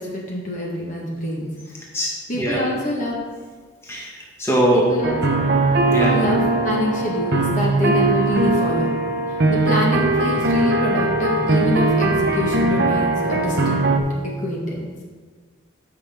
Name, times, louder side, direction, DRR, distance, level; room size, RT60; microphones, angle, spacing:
voice 1, 0.0-1.5 2.3-3.2 4.7-5.1 6.1-8.9 9.3-13.8 14.4-14.9, equal, 35° left, -3 dB, 1.4 m, -25 dB
voice 2, 1.9-2.6 3.8-4.8 5.9-6.2, right 1 dB, 10° left, -4 dB, 1.6 m, -21 dB
sound 1, 5.0-14.0, right 2 dB, 50° right, 0.9 m, -20 dB
13.5 x 5.9 x 3.6 m, 1.5 s
head